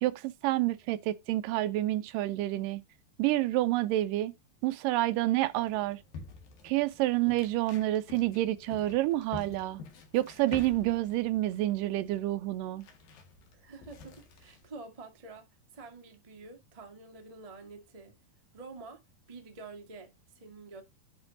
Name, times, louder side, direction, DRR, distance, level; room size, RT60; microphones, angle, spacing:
voice 1, 0.0-2.8 3.2-4.3 4.6-6.0 6.6-9.8 10.1-12.9, right 16 dB, 80° right, 2.1 m, -28 dB
sound 1, 5.5-14.7, left 5 dB, 80° left, 3.6 m, -49 dB
voice 2, 13.5-18.2 18.5-19.0 19.3-20.8, right 3 dB, 25° right, 0.7 m, -48 dB
10.5 x 4.5 x 3.9 m
omnidirectional pair, 4.0 m